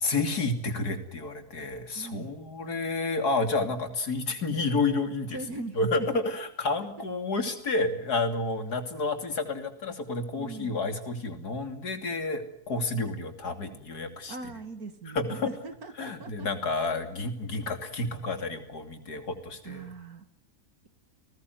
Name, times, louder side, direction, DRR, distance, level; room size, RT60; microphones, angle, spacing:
voice 1, 0.0-5.4 5.8-14.5 15.1-15.5 16.0-19.9, left 3 dB, 85° left, 8 dB, 3.5 m, -30 dB
voice 2, 1.9-2.3 5.3-6.2 10.3-10.9 14.3-16.5 19.6-20.3, right 3 dB, 75° right, 9 dB, 2.4 m, -40 dB
30.0 x 20.0 x 9.4 m, 0.75 s
omnidirectional pair, 1.6 m